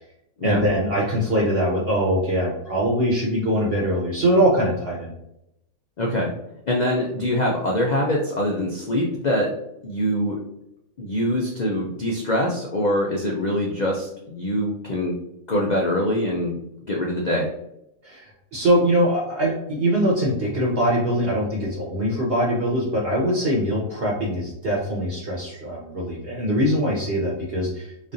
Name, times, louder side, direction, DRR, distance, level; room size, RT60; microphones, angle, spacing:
voice 1, 0.4-5.1 18.0-28.1, equal, 50° right, -3 dB, 1.0 m, -22 dB
voice 2, 6.0-6.3 6.7-9.5 9.8-10.4 11.0-15.2 15.5-16.6 16.9-17.5, left 1 dB, 75° left, -1 dB, 0.4 m, -24 dB
3.7 x 3.2 x 2.6 m, 0.82 s
omnidirectional pair, 1.5 m